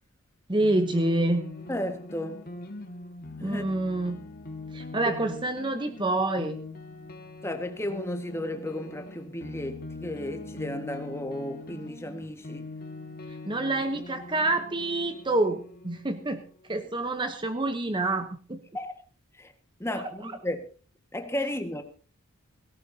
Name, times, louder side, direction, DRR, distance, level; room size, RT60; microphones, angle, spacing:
voice 1, 0.5-1.5 3.4-4.2 4.7-6.6 13.5-16.4 16.7-18.6 19.9-20.3, right 2 dB, 20° right, 0.9 m, -27 dB
sound 1, 0.6-16.8, left 2 dB, 40° left, 1.8 m, -42 dB
voice 2, 1.7-2.4 3.4-3.6 7.4-12.7 18.7-19.0 19.4-19.5 19.8-20.6 21.1-21.8, left 1 dB, 10° left, 1.6 m, -34 dB
17.5 x 17.5 x 2.8 m
head